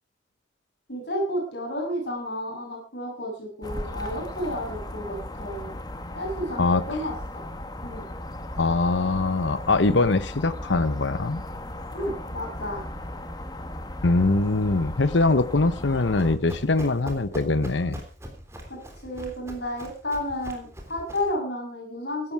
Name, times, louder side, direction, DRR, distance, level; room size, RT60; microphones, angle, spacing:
voice 1, 0.9-5.7 6.1-7.4 7.8-8.0 11.9-12.8 18.7-22.3, left 1 dB, 65° left, 1 dB, 7.6 m, -31 dB
sound 1, 3.6-16.4, left 1 dB, 20° left, 1.5 m, -36 dB
voice 2, 6.6-7.0 8.6-11.4 14.0-18.0, left 3 dB, 80° left, 14 dB, 0.9 m, -22 dB
Run, 15.8-21.4, equal, 15° right, 3.4 m, -41 dB
16.0 x 12.5 x 4.8 m, 0.36 s
head